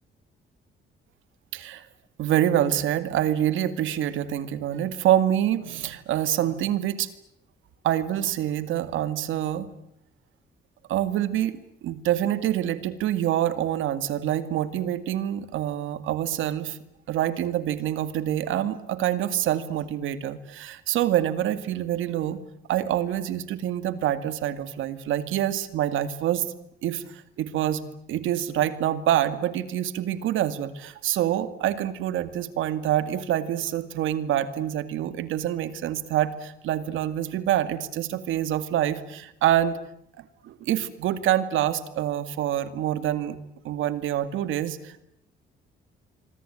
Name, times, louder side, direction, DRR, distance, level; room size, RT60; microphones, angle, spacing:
voice 1, 1.5-1.9 2.2-7.1 7.8-9.7 10.9-16.8 17.1-22.4 22.7-26.5 26.8-39.8 40.2-43.4 43.6-45.0, right 11 dB, 85° right, 12 dB, 2.2 m, -26 dB
26.0 x 24.0 x 9.0 m, 0.79 s
cardioid pair, 90°, 20 cm